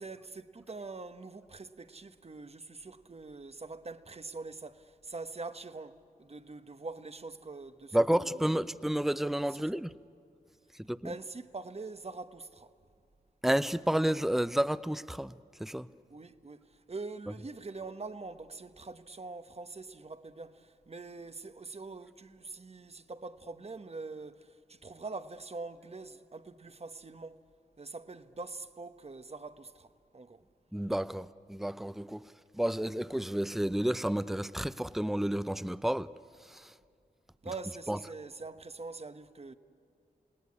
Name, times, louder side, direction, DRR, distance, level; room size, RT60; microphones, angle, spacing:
voice 1, 0.0-8.5 9.5-9.9 11.0-12.7 16.1-27.4 27.8-30.4 37.4-39.5, right 3 dB, 40° right, 1.1 m, -44 dB
voice 2, 7.9-9.9 10.8-11.1 13.4-15.9 30.7-36.1 36.5-36.7 37.9-38.0, right 1 dB, ahead, 0.6 m, -31 dB
28.5 x 18.0 x 9.8 m
cardioid pair, 45°, 16 cm